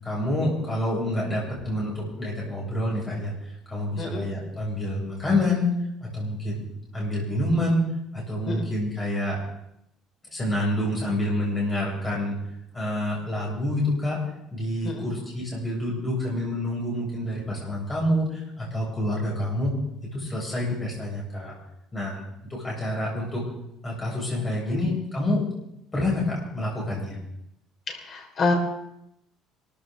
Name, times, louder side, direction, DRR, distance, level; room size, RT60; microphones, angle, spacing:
voice 1, 0.0-5.7 6.0-6.6 6.9-9.4 10.3-12.4 12.7-14.2 14.5-19.7 20.1-21.5 21.9-22.2 22.5-23.5 23.8-25.5 25.9-27.2, left 1 dB, 15° left, -4 dB, 7.1 m, -27 dB
voice 2, 27.9-28.5, left 3 dB, 30° left, 2 dB, 3.8 m, -28 dB
24.0 x 14.0 x 3.9 m, 0.80 s
cardioid pair, 175°, 0 cm